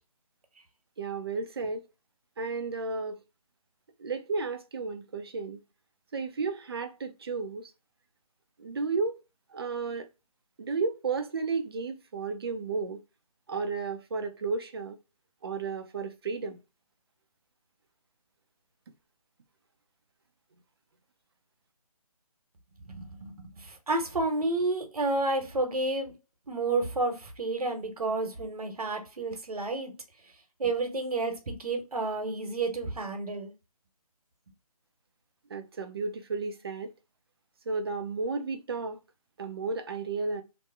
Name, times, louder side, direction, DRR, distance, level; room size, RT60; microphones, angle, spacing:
voice 1, 1.0-1.9 2.4-3.2 4.0-5.6 6.1-7.7 8.6-9.2 9.5-10.1 10.6-13.0 13.5-15.0 15.4-16.6 35.5-36.9 37.7-39.0 39.4-40.4, right 4 dB, 40° right, 0.5 m, -33 dB
voice 2, 22.8-26.1 26.5-29.9 30.6-33.5, right 2 dB, 75° right, 1.1 m, -30 dB
2.9 x 2.1 x 3.4 m
figure-of-eight pair, 165°, 19 cm